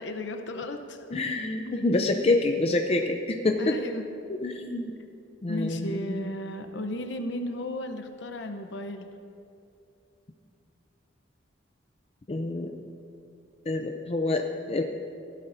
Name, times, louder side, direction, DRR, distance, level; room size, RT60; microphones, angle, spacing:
voice 1, 0.0-1.0 1.6-2.1 3.6-4.1 5.0-5.1 5.5-9.1, left 1 dB, 65° left, 6 dB, 0.8 m, -35 dB
voice 2, 1.1-3.7 4.4-5.0 5.4-6.3 12.3-12.7 13.7-14.8, left 2 dB, 30° left, 4 dB, 0.5 m, -27 dB
15.5 x 12.0 x 2.6 m, 2.5 s
head